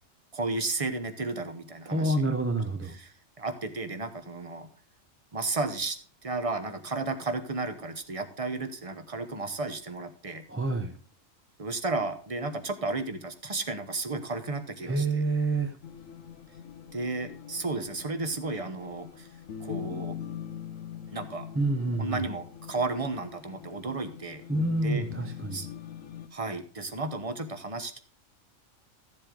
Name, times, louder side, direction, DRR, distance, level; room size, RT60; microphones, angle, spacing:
voice 1, 0.3-2.3 2.9-4.7 5.3-6.0 6.2-10.4 11.6-15.2 16.9-19.3 19.6-20.2 21.1-21.5 22.0-24.4 24.8-25.0 25.5-25.7 26.3-28.0, right 3 dB, 30° right, 9 dB, 1.0 m, -33 dB
voice 2, 1.9-3.0 10.5-11.0 14.8-15.8 21.5-22.2 24.5-25.6, right 2 dB, 10° right, 5 dB, 0.7 m, -28 dB
sound 1, 15.8-26.3, left 8 dB, 80° left, 1.2 m, -42 dB
14.0 x 7.6 x 3.8 m, 0.43 s
omnidirectional pair, 1.3 m